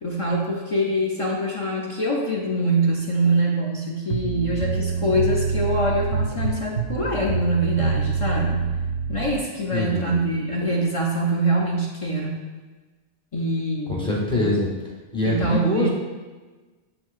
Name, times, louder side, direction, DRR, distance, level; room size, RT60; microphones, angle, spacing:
voice 1, 0.0-8.7 9.1-12.4 13.3-14.5 15.2-15.9, right 1 dB, 45° left, -2 dB, 0.4 m, -24 dB
sound 1, 4.1-9.4, right 5 dB, 70° right, 0.8 m, -26 dB
voice 2, 9.7-10.2 13.9-14.7 15.1-15.9, left 1 dB, 5° left, -4 dB, 0.7 m, -23 dB
7.6 x 2.7 x 2.4 m, 1.3 s
omnidirectional pair, 1.1 m